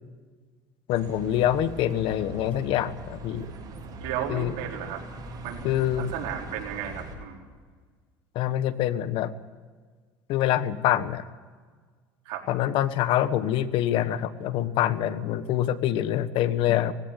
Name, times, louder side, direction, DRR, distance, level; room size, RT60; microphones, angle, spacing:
voice 1, 0.9-3.5 4.3-4.5 5.6-6.1 8.3-9.3 10.3-11.2 12.5-16.9, left 12 dB, 65° left, 14 dB, 1.2 m, -25 dB
Bus, 0.9-7.2, right 2 dB, 40° right, 7.1 m, -41 dB
voice 2, 4.0-5.0 5.4-5.6 5.9-7.4 12.2-12.5, right 9 dB, 75° right, -1 dB, 4.5 m, -34 dB
19.5 x 16.5 x 8.2 m, 1.5 s
supercardioid pair, 100°, 10 cm